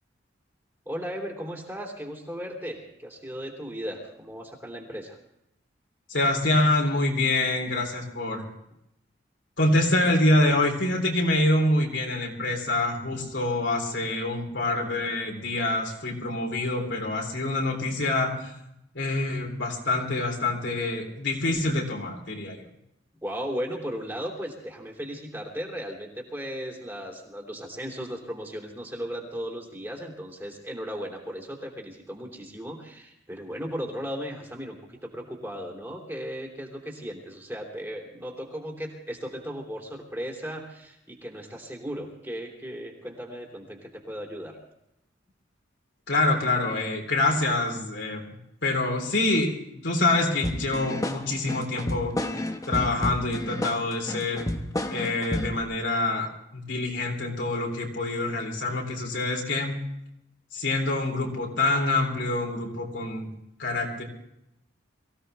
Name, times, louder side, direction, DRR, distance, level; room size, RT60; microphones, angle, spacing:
voice 1, 0.8-5.2 23.2-44.6, equal, 15° right, 0 dB, 3.1 m, -36 dB
voice 2, 6.1-8.4 9.6-18.6 18.9-22.6 46.1-48.2 48.6-52.1 52.7-54.5 54.9-59.8 60.5-63.3 63.6-64.0, left 2 dB, 70° left, 1 dB, 3.6 m, -26 dB
sound 1, 50.4-55.6, left 1 dB, 20° left, 1.1 m, -31 dB
23.5 x 16.0 x 3.4 m, 0.80 s
head